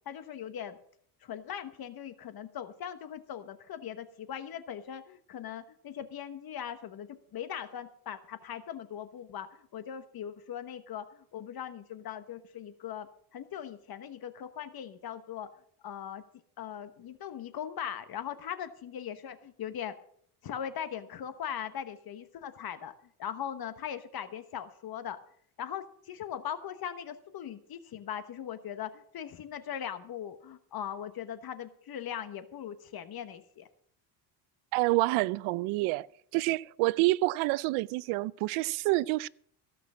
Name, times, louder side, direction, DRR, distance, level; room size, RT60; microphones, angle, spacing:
voice 1, 0.0-0.8 1.2-15.5 15.8-16.2 16.6-19.9 20.4-22.9 23.2-25.2 25.6-33.7, left 9 dB, 45° left, 1.1 m, -40 dB
voice 2, 34.7-36.1 36.3-39.3, right 20 dB, 75° right, 0.5 m, -28 dB
15.5 x 6.1 x 7.2 m
cardioid pair, 100°, 49 cm